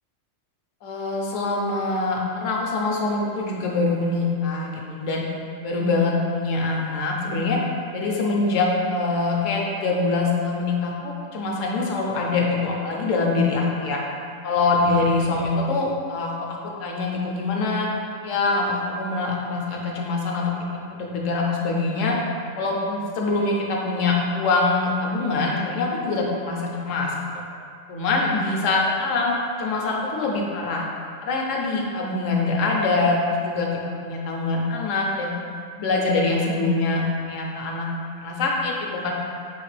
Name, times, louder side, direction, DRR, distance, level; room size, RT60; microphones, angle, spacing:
voice 1, 0.8-5.2 5.6-7.6 7.9-14.0 14.4-17.9 18.2-22.1 22.6-27.4 27.9-30.8 31.2-35.3 35.8-37.9 38.2-39.1, left 3 dB, 80° left, -1 dB, 1.1 m, -24 dB
5.0 x 3.2 x 3.2 m, 2.3 s
omnidirectional pair, 1.3 m